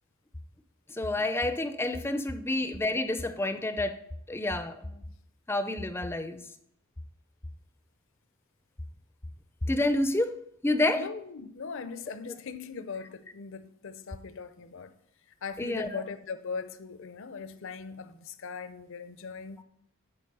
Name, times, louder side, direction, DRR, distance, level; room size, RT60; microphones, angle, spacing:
voice 1, 0.9-4.0 4.3-5.0 5.5-6.4 9.7-10.4 10.6-11.0 15.6-16.0, left 2 dB, 10° left, 0.4 m, -29 dB
voice 2, 11.0-14.9 15.4-19.6, left 5 dB, 60° left, 0.6 m, -40 dB
10.0 x 4.1 x 5.4 m
head